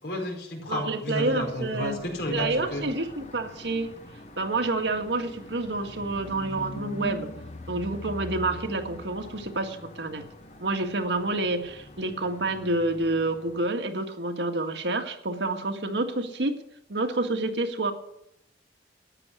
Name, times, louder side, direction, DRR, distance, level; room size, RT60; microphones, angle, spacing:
voice 1, 0.0-2.8, left 1 dB, 65° left, 1 dB, 4.9 m, -32 dB
voice 2, 0.7-2.0 2.3-3.9 4.4-7.3 7.7-10.2 10.6-16.6 16.9-17.9, right 2 dB, 80° right, 5 dB, 1.9 m, -28 dB
sound 1, 1.2-13.7, left 1 dB, 40° left, 1.1 m, -43 dB
13.5 x 9.5 x 9.7 m, 0.78 s
head